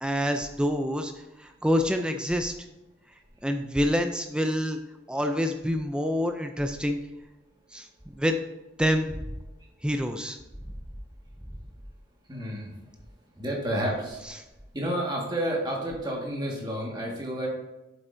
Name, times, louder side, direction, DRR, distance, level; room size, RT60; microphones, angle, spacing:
voice 1, 0.0-1.1 1.4-2.5 3.4-4.8 5.1-7.0 7.7-7.9 8.1-8.4 8.8-9.2 9.8-10.4, equal, 5° right, 6 dB, 0.4 m, -26 dB
voice 2, 12.3-12.7 13.4-14.2 14.7-17.5, right 1 dB, 20° right, -2 dB, 1.7 m, -30 dB
7.9 x 7.5 x 2.6 m, 1.0 s
head